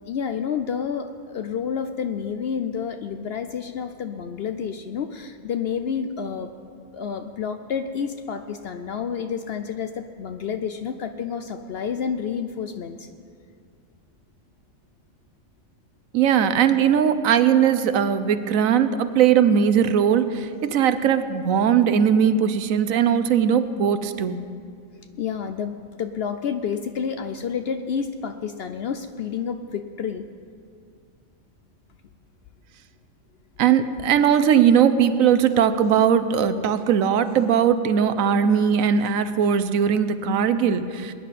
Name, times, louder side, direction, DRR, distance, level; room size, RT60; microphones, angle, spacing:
voice 1, 0.1-6.5 6.9-13.1 25.2-30.3, left 7 dB, 65° left, 8 dB, 0.6 m, -29 dB
voice 2, 16.1-24.4 33.6-41.1, right 8 dB, 75° right, 11 dB, 1.1 m, -19 dB
21.5 x 10.0 x 4.2 m, 2.3 s
omnidirectional pair, 1.4 m